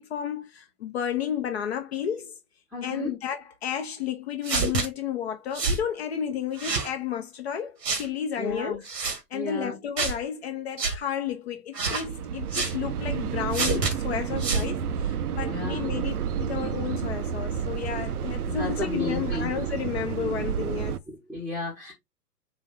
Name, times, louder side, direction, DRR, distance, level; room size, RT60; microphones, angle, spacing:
voice 1, 0.0-2.3 2.8-8.8 9.3-21.0, left 9 dB, 40° left, 0.7 m, -32 dB
voice 2, 2.7-3.1 8.4-8.8 9.3-9.8 15.4-15.8 18.5-19.5 21.1-21.9, left 2 dB, ahead, 0.8 m, -33 dB
sound 1, 4.4-4.9 5.5-5.8 6.6-6.9 7.8-8.1 8.8-9.2 10.0-10.2 10.8-11.0 11.7-12.1 12.5-12.7 13.5-13.9 14.4-14.7, right 4 dB, 80° right, 1.4 m, -27 dB
sound 2, 12.0-21.0, right 7 dB, 65° right, 0.6 m, -30 dB
4.1 x 2.6 x 4.7 m
figure-of-eight pair, 120°, 49 cm